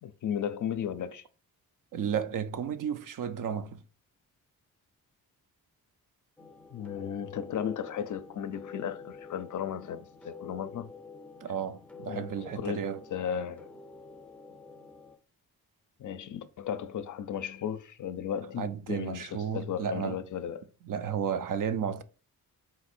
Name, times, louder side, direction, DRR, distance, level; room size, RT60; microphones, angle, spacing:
voice 1, 0.0-1.2 6.7-10.9 12.1-12.3 12.6-13.7 16.0-20.6, left 8 dB, 55° left, 0.4 m, -35 dB
voice 2, 1.9-3.8 11.4-13.0 18.6-20.2 20.9-22.0, right 7 dB, 55° right, 0.5 m, -33 dB
sound 1, 6.4-15.2, left 4 dB, 5° left, 0.5 m, -48 dB
4.0 x 2.5 x 4.2 m
cardioid pair, 75°, 38 cm